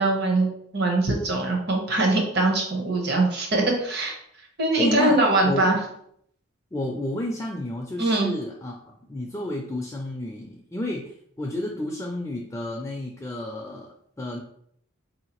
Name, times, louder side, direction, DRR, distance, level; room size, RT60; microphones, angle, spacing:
voice 1, 0.0-4.2 4.6-5.8 8.0-8.3, right 2 dB, 50° right, 0 dB, 0.9 m, -22 dB
voice 2, 4.8-5.7 6.7-8.8 9.1-14.4, left 1 dB, 15° left, 0 dB, 0.3 m, -31 dB
4.4 x 2.8 x 2.9 m, 0.69 s
head